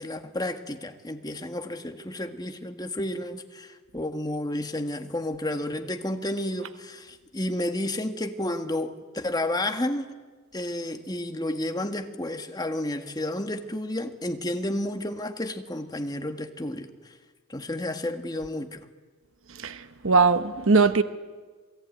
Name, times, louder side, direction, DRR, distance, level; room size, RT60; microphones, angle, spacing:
voice 1, 0.0-10.1 10.5-17.1 17.5-18.9, left 1 dB, 20° left, 1.6 m, -31 dB
voice 2, 20.0-21.0, right 4 dB, 65° right, 1.0 m, -19 dB
28.0 x 20.5 x 9.4 m
head